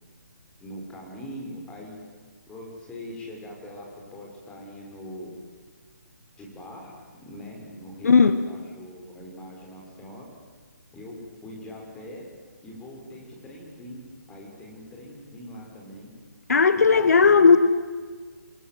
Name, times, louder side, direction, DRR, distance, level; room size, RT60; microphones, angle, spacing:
voice 1, 0.6-2.0 2.5-5.3 6.4-10.3 10.9-12.3 12.6-14.0 14.3-16.1 16.7-17.5, equal, 10° left, -1 dB, 6.3 m, -42 dB
voice 2, 8.0-8.4 16.5-17.6, left 5 dB, 60° left, 12 dB, 1.4 m, -16 dB
28.5 x 24.5 x 7.9 m, 1.5 s
figure-of-eight pair, 140°, 10 cm